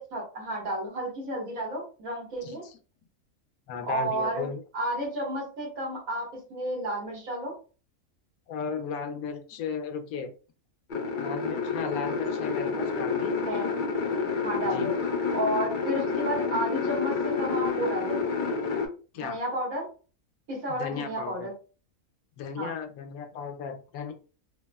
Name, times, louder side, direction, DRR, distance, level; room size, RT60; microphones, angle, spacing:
voice 1, 0.0-2.6 3.8-4.5 4.7-7.5 13.5-13.7 14.4-14.9 15.3-18.2 19.2-19.9 20.5-21.5 22.6-22.7, right 1 dB, 75° right, -3 dB, 1.8 m, -31 dB
voice 2, 2.4-2.7 3.7-4.6 8.5-10.3 11.2-13.3 14.7-14.9 19.1-19.4 20.7-21.5 22.4-24.1, left 6 dB, 90° left, 6 dB, 1.1 m, -35 dB
sound 1, 10.9-18.9, left 5 dB, 55° left, 0.6 m, -29 dB
3.9 x 2.0 x 2.2 m, 0.36 s
omnidirectional pair, 1.5 m